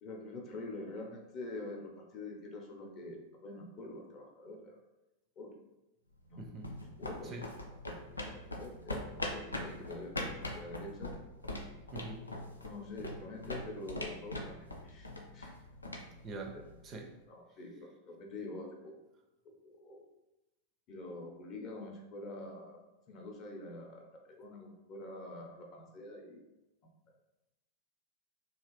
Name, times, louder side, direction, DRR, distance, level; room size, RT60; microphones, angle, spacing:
voice 1, 0.0-4.8 5.4-5.6 6.3-6.5 7.0-7.3 7.9-9.0 9.3-11.1 12.6-15.5 16.5-16.7 17.3-18.9 19.4-20.0 20.9-22.8 23.1-26.4 26.8-26.9, left 2 dB, 35° left, 1 dB, 0.6 m, -46 dB
sound 1, 6.2-17.0, left 1 dB, 80° left, 0.4 m, -42 dB
voice 2, 6.4-6.7 7.2-7.5 11.9-12.3 16.2-17.1, right 3 dB, 30° right, 4 dB, 0.4 m, -44 dB
3.0 x 2.3 x 3.0 m, 0.97 s
figure-of-eight pair, 90°, 0 cm